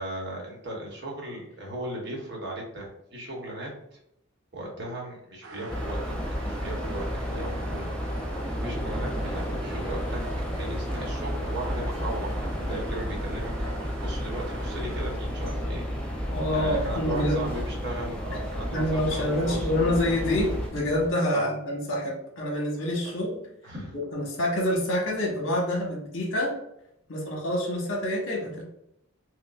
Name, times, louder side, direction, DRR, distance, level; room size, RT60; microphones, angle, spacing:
voice 1, 0.0-3.7 4.5-6.1 6.4-10.2 10.6-19.7 21.3-21.5 23.6-23.9, right 1 dB, 55° right, -2 dB, 1.0 m, -37 dB
sound 1, 5.4-15.5 16.2-16.3 17.9-18.0 18.4-18.5 18.9-19.0 19.5-19.6, right 3 dB, 70° right, 0.4 m, -45 dB
sound 2, 5.7-20.7, equal, 5° left, 0.4 m, -32 dB
sound 3, 8.4-21.1, equal, 30° right, 0.8 m, -39 dB
voice 2, 16.3-17.5 18.7-23.5 23.9-26.6 27.1-28.6, left 1 dB, 75° left, 0 dB, 1.0 m, -27 dB
4.8 x 2.1 x 2.3 m, 0.78 s
head